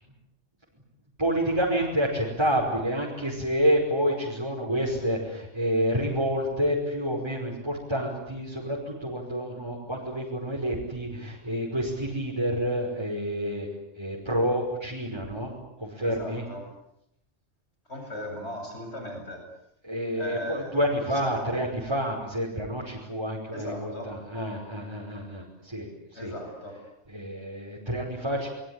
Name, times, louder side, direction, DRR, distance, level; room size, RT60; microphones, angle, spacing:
voice 1, 1.2-13.7 14.0-15.5 15.8-16.4 19.8-26.3 27.1-28.5, equal, 20° right, -3 dB, 5.5 m, -28 dB
voice 2, 16.0-16.7 17.9-19.4 20.2-21.6 23.5-24.1 26.1-26.8, left 1 dB, 60° left, 2 dB, 8.4 m, -38 dB
26.0 x 23.0 x 9.9 m, 0.79 s
omnidirectional pair, 1.3 m